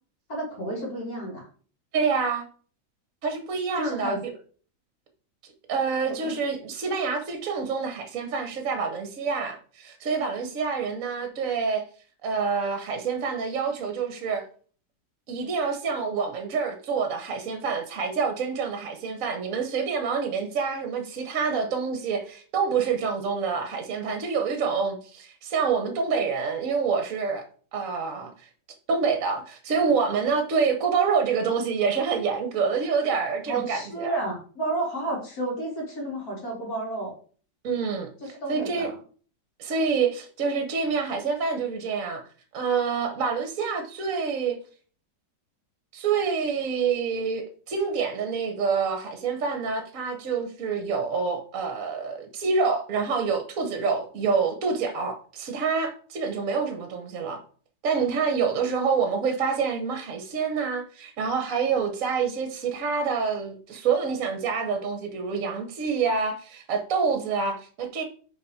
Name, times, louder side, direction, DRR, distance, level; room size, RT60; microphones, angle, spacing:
voice 1, 0.3-1.4 3.8-4.2 6.0-6.3 33.5-37.1 38.4-39.0, right 2 dB, 55° left, 3.1 m, -31 dB
voice 2, 1.9-2.5 3.2-4.2 5.7-11.8 12.2-14.4 15.3-27.5 27.7-28.3 28.9-34.2 37.6-38.1 38.5-38.9 39.6-42.2 42.5-44.6 45.9-57.4 57.8-68.0, right 5 dB, 50° right, 1.3 m, -27 dB
5.6 x 4.8 x 4.9 m
omnidirectional pair, 1.9 m